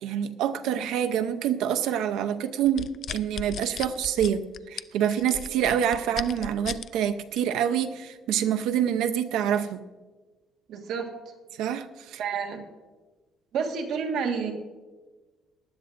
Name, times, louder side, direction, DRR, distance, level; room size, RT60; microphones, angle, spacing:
voice 1, 0.0-9.8 11.6-12.2, right 9 dB, 90° right, 9 dB, 0.6 m, -26 dB
sound 1, 2.7-6.9 7.4-7.6, left 9 dB, 45° left, 0.3 m, -36 dB
voice 2, 10.7-11.1 12.2-12.6 13.5-14.5, right 6 dB, 65° right, 4 dB, 1.5 m, -29 dB
19.0 x 11.5 x 2.5 m, 1.3 s
cardioid pair, 155°, 0 cm